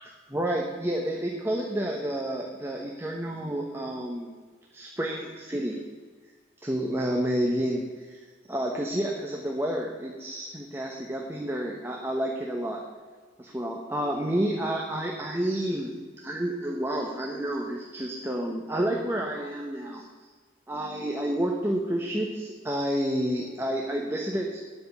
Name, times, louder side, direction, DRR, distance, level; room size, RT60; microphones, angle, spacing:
voice 1, 0.0-4.3 4.7-5.8 6.6-8.2 8.5-12.8 13.4-15.9 16.2-20.0 20.7-24.6, right 1 dB, 15° right, -1 dB, 1.0 m, -30 dB
9.7 x 6.0 x 8.1 m, 1.5 s
head